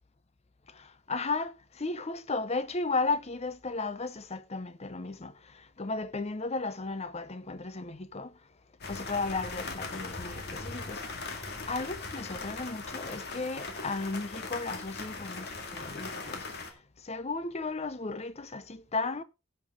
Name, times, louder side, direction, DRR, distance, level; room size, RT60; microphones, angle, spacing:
voice 1, 0.7-8.4 8.9-16.5 17.0-19.2, left 3 dB, 30° left, 0.7 m, -35 dB
sound 1, 8.8-16.7, left 3 dB, 50° left, 2.0 m, -39 dB
17.0 x 6.8 x 3.6 m
head